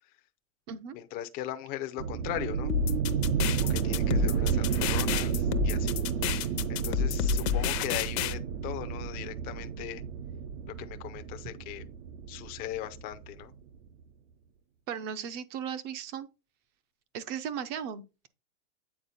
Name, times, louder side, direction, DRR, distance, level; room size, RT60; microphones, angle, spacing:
voice 1, 0.9-2.7 3.6-5.9 6.7-10.0 10.8-11.8 12.3-13.5, left 13 dB, 20° left, 0.6 m, -39 dB
sound 1, 2.0-13.4, right 7 dB, 55° right, 0.7 m, -31 dB
sound 2, 2.7-8.3, left 10 dB, 50° left, 0.8 m, -30 dB
voice 2, 14.9-16.3 17.1-18.3, right 8 dB, 25° right, 0.6 m, -36 dB
8.6 x 4.1 x 4.1 m
hypercardioid pair, 150°, 43 cm